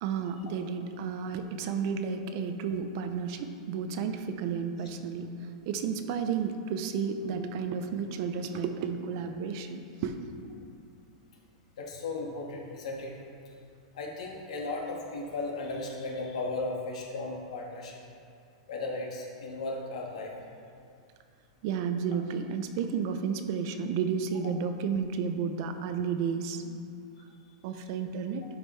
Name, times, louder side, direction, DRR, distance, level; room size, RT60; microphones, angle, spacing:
voice 1, 0.0-5.3 5.7-10.2 21.6-26.8 27.6-28.5, right 6 dB, 45° right, 7 dB, 0.5 m, -32 dB
voice 2, 11.8-13.1 13.9-18.0 18.7-20.3, left 2 dB, 85° left, -1 dB, 1.6 m, -35 dB
11.5 x 5.1 x 3.2 m, 2.5 s
supercardioid pair, 165°, 3 cm